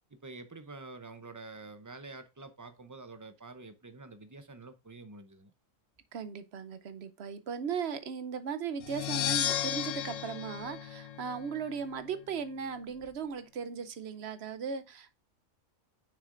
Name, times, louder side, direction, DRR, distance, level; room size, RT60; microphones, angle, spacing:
voice 1, 0.1-5.5, right 3 dB, 25° right, 0.5 m, -47 dB
voice 2, 6.1-15.1, right 6 dB, 60° right, 0.9 m, -37 dB
sound 1, 8.8-11.7, left 11 dB, 80° left, 1.0 m, -34 dB
6.6 x 6.5 x 2.5 m
omnidirectional pair, 1.3 m